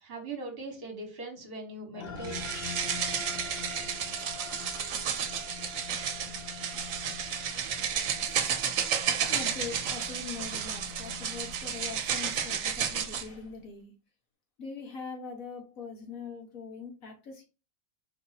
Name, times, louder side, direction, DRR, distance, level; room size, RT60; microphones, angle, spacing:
voice 1, 0.0-2.4, right 3 dB, 45° right, 3 dB, 1.4 m, -40 dB
sound 1, 1.9-12.6, left 7 dB, 45° left, 0.8 m, -45 dB
sound 2, 2.2-13.3, right 8 dB, 75° right, 1.1 m, -32 dB
voice 2, 8.2-8.6 9.3-13.9 14.6-17.5, left 5 dB, 80° left, 2 dB, 1.7 m, -42 dB
4.5 x 2.7 x 4.0 m, 0.31 s
omnidirectional pair, 1.4 m